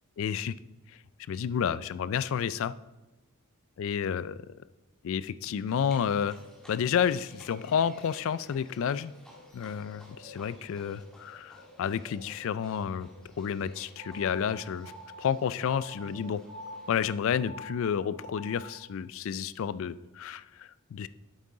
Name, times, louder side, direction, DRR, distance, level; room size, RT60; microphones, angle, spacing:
voice 1, 0.2-0.5 1.3-2.7 3.8-4.4 5.0-6.4 6.7-9.1 9.5-13.1 13.4-14.9 15.2-16.4 16.9-21.1, left 7 dB, 60° left, 17 dB, 0.3 m, -30 dB
Livestock farm animals working animals, 5.7-17.0, left 1 dB, 5° left, 1.4 m, -53 dB
sound 1, 14.0-18.9, equal, 15° right, 1.4 m, -47 dB
8.3 x 7.9 x 3.7 m, 1.0 s
head